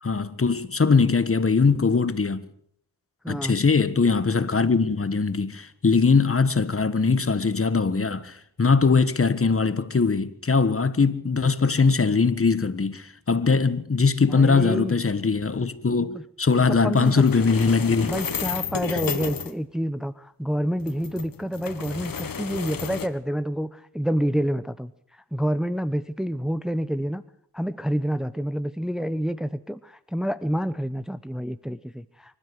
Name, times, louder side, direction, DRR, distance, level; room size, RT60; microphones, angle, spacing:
voice 1, 0.0-2.5 3.3-18.1 18.9-19.0, left 4 dB, 35° left, 1.5 m, -21 dB
voice 2, 3.2-3.5 14.3-15.0 16.1-16.2 16.7-17.3 18.0-27.2 27.5-32.4, equal, ahead, 0.9 m, -28 dB
sound 1, 16.9-19.5 20.8-23.1, left 6 dB, 60° left, 1.9 m, -32 dB
25.0 x 13.0 x 8.1 m
cardioid pair, 60°, 38 cm